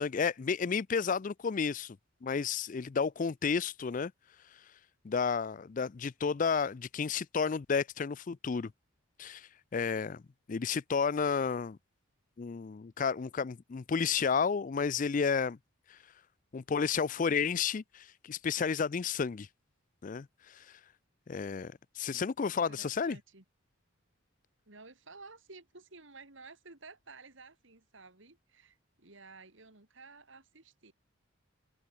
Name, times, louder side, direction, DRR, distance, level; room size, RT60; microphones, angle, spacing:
voice 1, 0.0-4.1 5.0-8.7 9.2-10.2 10.5-11.8 12.4-15.6 15.9-16.0 16.5-19.5 20.0-20.7 21.3-23.2, left 5 dB, 40° left, 0.4 m, -32 dB
voice 2, 22.7-23.4 24.7-30.9, right 3 dB, 60° right, 2.6 m, -53 dB
head